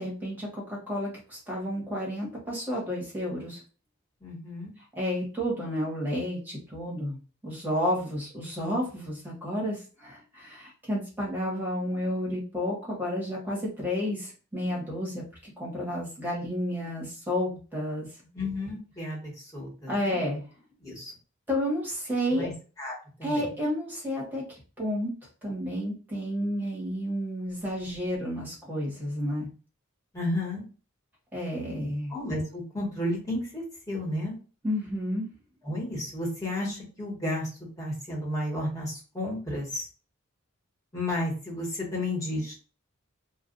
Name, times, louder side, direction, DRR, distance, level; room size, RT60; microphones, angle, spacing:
voice 1, 0.0-3.6 5.0-15.2 15.6-18.1 19.9-20.4 21.5-22.5 23.2-25.1 25.4-29.5 31.3-32.1 34.6-35.3, equal, 10° right, -4 dB, 1.2 m, -31 dB
voice 2, 4.2-4.7 18.3-20.2 20.8-21.1 22.3-22.5 22.8-23.5 30.1-30.6 32.1-34.4 35.6-37.5 37.8-39.8 40.9-42.6, left 1 dB, 15° left, -4 dB, 1.2 m, -32 dB
2.4 x 2.3 x 3.7 m, 0.36 s
head